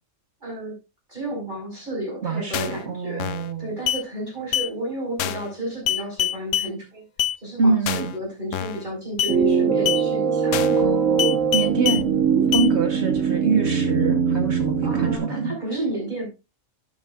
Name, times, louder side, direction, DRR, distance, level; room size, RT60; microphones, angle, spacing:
voice 1, 0.4-0.8 1.1-3.3 3.6-7.0 7.4-10.6 14.8-16.3, right 1 dB, 40° right, -1 dB, 5.4 m, -32 dB
voice 2, 2.2-3.8 7.6-8.1 10.8-12.2 12.5-15.5, right 4 dB, 60° right, 5 dB, 1.6 m, -25 dB
sound 1, 2.5-2.8 3.2-3.5 3.9-4.0 4.5-4.7 5.2-5.5 5.9-6.7 7.2-7.4 7.9-8.2 8.5-8.8 9.2-9.4 9.9-10.0 10.5-10.8 11.2-12.0 12.5-12.7, left 10 dB, 80° left, 1.0 m, -25 dB
sound 2, 9.3-15.2, right 6 dB, 75° right, 1.7 m, -21 dB
12.5 x 9.2 x 2.5 m, 0.26 s
omnidirectional pair, 1.3 m